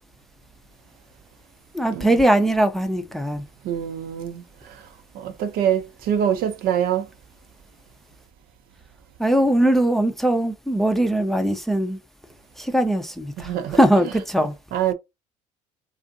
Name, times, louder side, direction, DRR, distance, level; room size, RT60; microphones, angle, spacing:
voice 1, 1.7-3.4 9.2-12.0 12.6-14.5, right 1 dB, ahead, 0.5 m, -20 dB
voice 2, 3.6-4.8 5.1-7.1 13.4-14.9, right 9 dB, 65° right, 0.5 m, -26 dB
2.5 x 2.4 x 2.6 m
hypercardioid pair, 65°, 17 cm